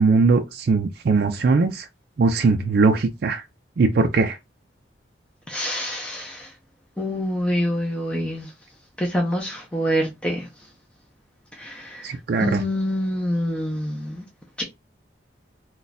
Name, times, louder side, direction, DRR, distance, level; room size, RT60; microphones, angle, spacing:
voice 1, 0.0-1.9 2.2-3.4 3.8-4.4 12.0-12.6, right 4 dB, 55° right, 0.4 m, -20 dB
voice 2, 5.5-6.5 7.0-8.5 9.0-10.5 11.6-14.2 14.6-14.7, equal, 5° left, 0.5 m, -26 dB
2.4 x 2.2 x 4.0 m
head